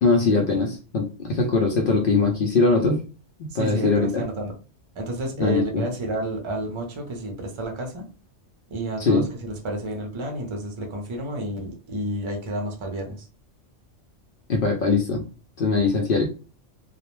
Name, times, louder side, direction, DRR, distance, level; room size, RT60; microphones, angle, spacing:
voice 1, 0.0-3.0 3.5-4.1 5.4-5.8 9.0-9.2 14.5-15.2 15.6-16.3, left 3 dB, 60° left, 2 dB, 0.6 m, -21 dB
voice 2, 3.5-4.6 4.9-8.1 8.7-13.3, right 1 dB, 35° right, 2 dB, 0.5 m, -30 dB
2.4 x 2.0 x 3.0 m, 0.34 s
omnidirectional pair, 1.3 m